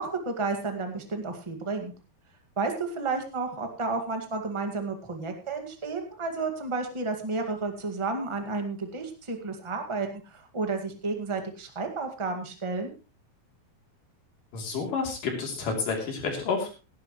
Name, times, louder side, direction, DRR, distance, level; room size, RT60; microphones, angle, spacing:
voice 1, 0.0-1.9 2.6-12.9, right 3 dB, 20° right, 4 dB, 0.8 m, -31 dB
voice 2, 14.5-16.7, left 4 dB, 65° left, 1 dB, 4.8 m, -30 dB
17.0 x 12.0 x 3.1 m, 0.31 s
omnidirectional pair, 4.2 m